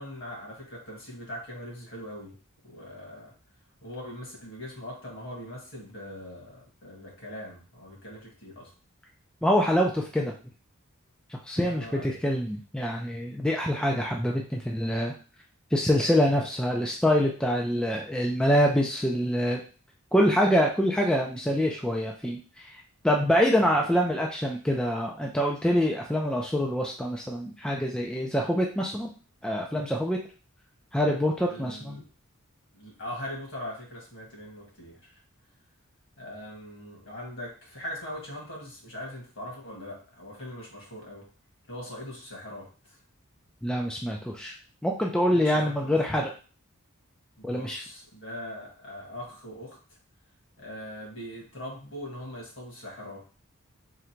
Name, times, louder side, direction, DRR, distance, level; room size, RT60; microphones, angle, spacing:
voice 1, 0.0-2.4 2.6-3.3 3.8-8.7 11.6-12.2 23.7-23.9 31.4-32.0 32.7-35.1 36.2-41.3 41.7-43.0 45.3-46.0 47.4-49.8 50.6-53.3, left 1 dB, 60° left, -2 dB, 1.8 m, -41 dB
voice 2, 9.4-10.3 11.5-15.1 15.7-19.6 20.1-22.7 23.0-29.1 29.4-30.2 30.9-32.0 43.6-44.5 44.8-46.3 47.4-47.8, equal, 5° left, -1 dB, 0.4 m, -25 dB
3.8 x 2.2 x 4.4 m, 0.37 s
head